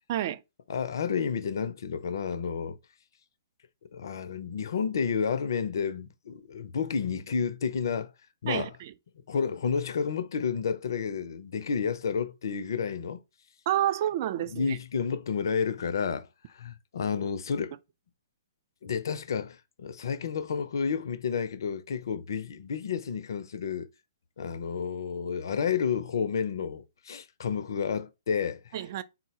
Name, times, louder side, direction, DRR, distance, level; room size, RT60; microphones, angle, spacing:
voice 1, 0.1-0.4 8.5-8.9 13.7-14.8 28.7-29.0, right 12 dB, 45° right, 0.3 m, -29 dB
voice 2, 0.7-2.8 3.9-8.1 8.4-8.7 9.3-13.2 14.5-17.8 18.8-23.9 24.4-28.7, left 6 dB, 65° left, 0.4 m, -31 dB
3.8 x 2.0 x 2.8 m
hypercardioid pair, 125°, 2 cm